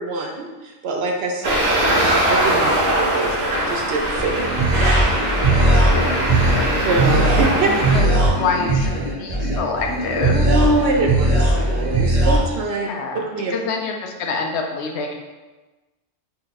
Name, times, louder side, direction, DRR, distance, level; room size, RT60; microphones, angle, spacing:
voice 1, 0.0-4.9 6.8-7.7 10.5-12.9 13.1-13.5, right 3 dB, 65° right, 1 dB, 0.8 m, -24 dB
Traffic noise roadway noise, 1.4-8.0, right 1 dB, 85° right, 1.4 m, -21 dB
sound 1, 4.2-12.4, right 1 dB, 40° right, 0.9 m, -19 dB
voice 2, 5.9-6.7 7.6-10.5 12.9-13.3 13.5-15.1, left 4 dB, 75° left, 2 dB, 0.8 m, -26 dB
4.0 x 2.2 x 3.9 m, 1.2 s
omnidirectional pair, 1.2 m